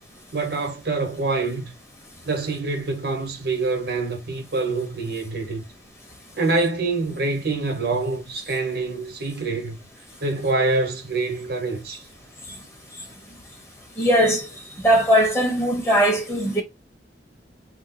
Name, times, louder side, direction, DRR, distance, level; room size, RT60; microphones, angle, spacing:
voice 1, 0.3-1.7 2.3-5.6 6.4-9.8 10.2-12.1, right 3 dB, 60° right, 1.0 m, -25 dB
voice 2, 14.0-14.5 14.8-16.6, equal, 15° left, 1.4 m, -19 dB
3.8 x 2.2 x 4.1 m
head